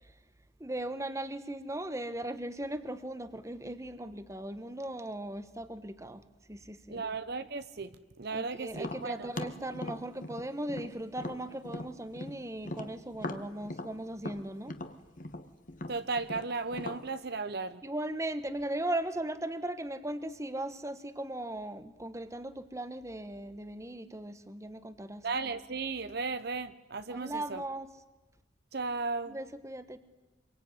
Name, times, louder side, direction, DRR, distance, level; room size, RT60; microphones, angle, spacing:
voice 1, 0.6-6.2 6.5-7.0 8.3-14.8 17.8-25.3 27.1-27.9 29.3-30.0, right 1 dB, 15° right, 11 dB, 1.4 m, -38 dB
voice 2, 6.9-7.9 8.2-9.3 15.9-17.8 25.2-27.6 28.7-29.4, right 4 dB, 60° right, 12 dB, 1.0 m, -35 dB
Tap, 8.7-12.4 12.6-17.0, left 2 dB, 45° left, 1.6 m, -40 dB
26.5 x 23.0 x 9.6 m, 1.1 s
head